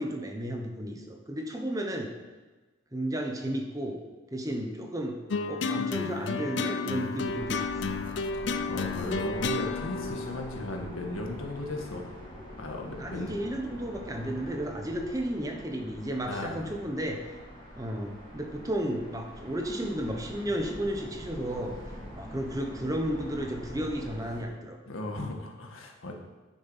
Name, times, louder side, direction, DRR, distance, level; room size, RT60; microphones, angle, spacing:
voice 1, 0.0-2.1 2.9-4.0 4.3-5.2 5.5-7.7 13.0-17.4 17.7-21.8 22.1-24.8, right 1 dB, 15° right, 2 dB, 1.0 m, -33 dB
sound 1, 5.3-11.8, left 4 dB, 60° left, 0.5 m, -32 dB
sound 2, 7.3-24.4, equal, 25° left, 3.7 m, -44 dB
voice 2, 8.7-12.1 12.6-13.4 16.2-16.7 24.9-26.1, left 1 dB, 85° left, 2 dB, 1.7 m, -36 dB
9.6 x 7.1 x 5.7 m, 1.2 s
head